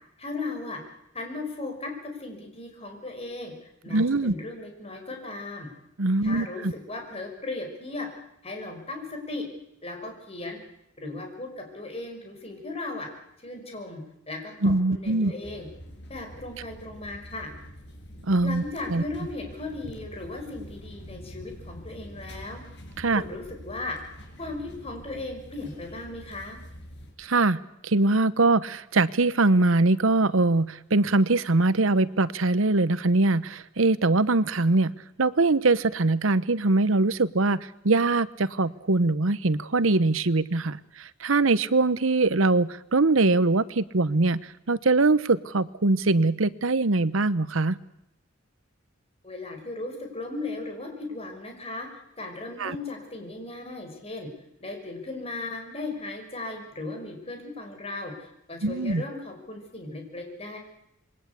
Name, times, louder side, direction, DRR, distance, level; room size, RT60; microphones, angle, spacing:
voice 1, 0.2-0.8 1.1-3.5 3.8-5.7 6.2-8.1 8.4-9.5 9.8-10.6 11.0-13.1 13.4-14.0 14.3-15.7 16.1-17.5 18.4-22.6 23.1-24.0 24.4-26.6 49.2-51.9 52.2-54.3 54.6-60.6, left 2 dB, 30° left, 4 dB, 5.9 m, -37 dB
voice 2, 3.9-4.3 6.0-6.7 14.6-15.3 18.3-18.6 18.9-19.0 23.0-23.2 27.2-34.9 35.2-44.4 44.7-47.8 52.6-52.7 58.6-59.0, right 3 dB, 80° right, 16 dB, 1.0 m, -22 dB
sound 1, 15.4-27.1, equal, 60° left, 6.6 m, -45 dB
27.0 x 22.0 x 8.3 m, 0.82 s
head